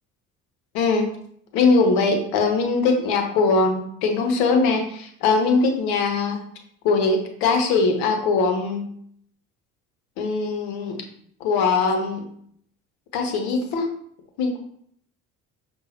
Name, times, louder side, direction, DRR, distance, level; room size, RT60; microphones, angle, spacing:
voice 1, 0.7-1.1 1.5-6.4 6.8-8.9 10.2-11.0 11.4-12.2 13.1-13.9 14.4-14.6, left 4 dB, 65° left, 4 dB, 0.8 m, -21 dB
5.4 x 2.3 x 2.7 m, 0.67 s
hypercardioid pair, 55°, 40 cm